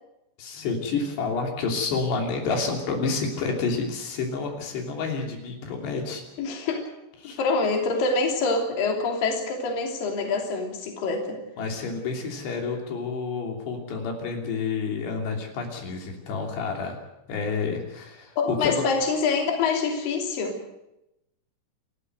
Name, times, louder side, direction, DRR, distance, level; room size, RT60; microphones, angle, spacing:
voice 1, 0.4-6.2 7.2-7.4 11.6-17.0 17.3-18.8, left 4 dB, 80° left, 1 dB, 5.2 m, -29 dB
voice 2, 6.4-6.8 7.4-11.4 18.4-20.6, left 4 dB, 55° left, 2 dB, 4.6 m, -25 dB
28.5 x 14.5 x 7.9 m, 0.89 s
omnidirectional pair, 4.8 m